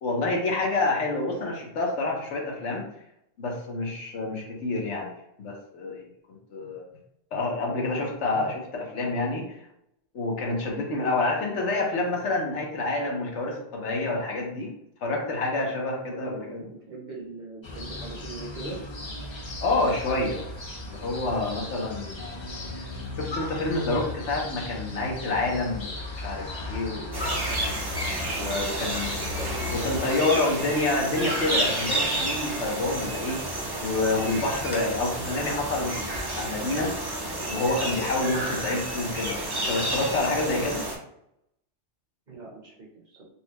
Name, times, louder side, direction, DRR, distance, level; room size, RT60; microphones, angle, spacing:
voice 1, 0.0-2.8 3.4-5.1 5.4-6.8 7.3-9.6 10.1-14.7 15.0-16.7 19.6-20.4 20.8-22.4 23.2-27.4 28.3-29.4 29.6-33.4 33.8-36.9 37.5-40.8, left 2 dB, 80° left, -1 dB, 1.2 m, -28 dB
voice 2, 16.1-18.8 29.4-30.5 42.3-43.3, right 2 dB, 45° right, -3 dB, 1.0 m, -40 dB
sound 1, 17.6-30.0, left 2 dB, 40° left, 0.4 m, -36 dB
sound 2, 27.1-40.9, right 1 dB, 30° right, 0.5 m, -30 dB
4.1 x 2.2 x 2.9 m, 0.78 s
omnidirectional pair, 1.2 m